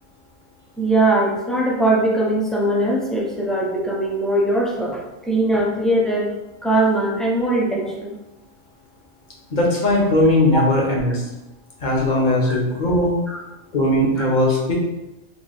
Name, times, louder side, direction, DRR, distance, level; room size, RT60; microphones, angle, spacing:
voice 1, 0.8-6.3 6.6-8.1 10.5-10.6 12.5-12.6 13.3-13.4 14.2-14.3, right 1 dB, ahead, -4 dB, 0.4 m, -20 dB
voice 2, 9.5-11.2 11.8-13.2 13.7-14.7, left 1 dB, 45° left, -3 dB, 0.9 m, -18 dB
3.0 x 2.7 x 4.0 m, 0.99 s
omnidirectional pair, 1.2 m